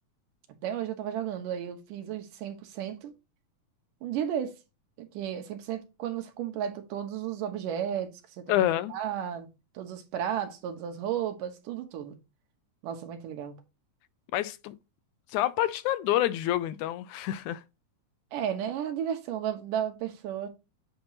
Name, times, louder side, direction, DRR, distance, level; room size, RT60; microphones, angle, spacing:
voice 1, 0.6-3.1 4.0-4.6 5.0-8.6 8.9-9.5 9.7-12.2 12.8-13.6 18.3-20.5, right 9 dB, 80° right, 2.8 m, -33 dB
voice 2, 8.5-8.9 14.3-14.8 15.3-17.6, left 13 dB, 80° left, 1.8 m, -27 dB
8.6 x 2.9 x 5.6 m
omnidirectional pair, 3.8 m